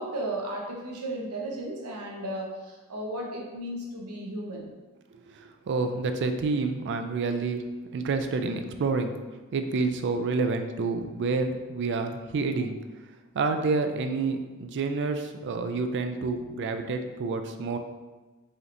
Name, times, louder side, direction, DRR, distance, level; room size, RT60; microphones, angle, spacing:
voice 1, 0.0-4.7, right 1 dB, 85° right, -1 dB, 0.9 m, -34 dB
voice 2, 5.3-7.6 7.9-9.1 9.5-12.8 13.3-17.8, right 4 dB, 55° right, 7 dB, 0.4 m, -28 dB
4.9 x 2.8 x 2.6 m, 1.2 s
head